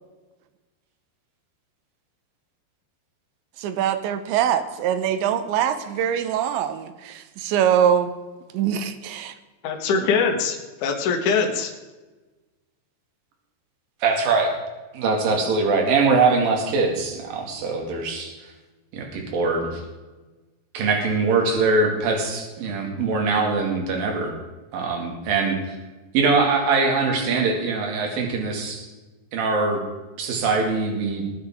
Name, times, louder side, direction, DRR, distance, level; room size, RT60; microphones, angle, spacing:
voice 1, 3.6-8.2 8.5-9.3 10.0-10.1, right 9 dB, 80° right, 10 dB, 3.1 m, -23 dB
voice 2, 9.6-11.7, left 5 dB, 55° left, 2 dB, 2.5 m, -23 dB
voice 3, 14.0-14.5 14.9-18.3 18.9-19.8 20.7-24.3 24.7-25.8 26.1-28.9 29.3-29.8 30.2-31.3, right 4 dB, 55° right, 1 dB, 3.6 m, -22 dB
20.5 x 9.4 x 3.7 m, 1.2 s
omnidirectional pair, 5.3 m